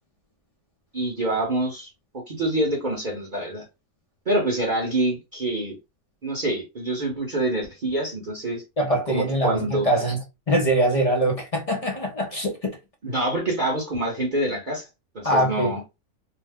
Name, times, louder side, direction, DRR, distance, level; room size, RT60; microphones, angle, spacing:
voice 1, 0.9-1.9 2.3-3.6 4.3-5.8 6.2-8.6 9.1-9.9 13.0-14.9 15.1-15.8, right 1 dB, 40° right, 0.9 m, -26 dB
voice 2, 8.8-12.8 15.2-15.7, right 1 dB, 45° left, 0.4 m, -23 dB
2.7 x 2.1 x 3.4 m
omnidirectional pair, 1.5 m